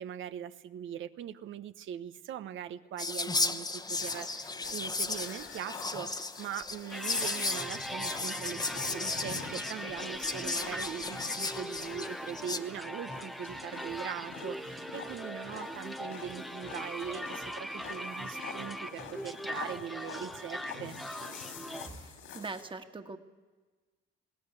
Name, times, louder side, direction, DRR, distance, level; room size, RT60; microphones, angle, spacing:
voice 1, 0.0-20.9, right 9 dB, 75° right, 12 dB, 1.0 m, -41 dB
Whispering, 3.0-12.6, left 3 dB, 20° left, 1.0 m, -35 dB
sound 1, 3.3-22.6, left 4 dB, 85° left, 4.9 m, -47 dB
sound 2, 6.9-21.9, equal, ahead, 0.8 m, -41 dB
voice 2, 21.9-23.2, right 3 dB, 25° right, 8 dB, 1.7 m, -42 dB
21.0 x 17.0 x 9.6 m, 1.3 s
cardioid pair, 90°, 20 cm